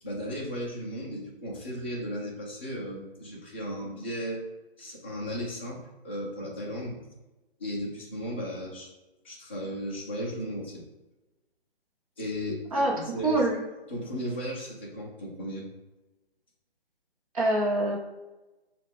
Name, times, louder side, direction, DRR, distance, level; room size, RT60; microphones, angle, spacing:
voice 1, 0.0-4.4 4.8-7.0 7.6-8.9 9.2-10.8 12.2-13.5 13.9-15.7, equal, 10° left, -5 dB, 0.5 m, -35 dB
voice 2, 13.2-13.6 17.3-18.0, right 1 dB, 35° right, -2 dB, 1.0 m, -24 dB
5.4 x 2.4 x 3.5 m, 1.1 s
figure-of-eight pair, 140°, 30 cm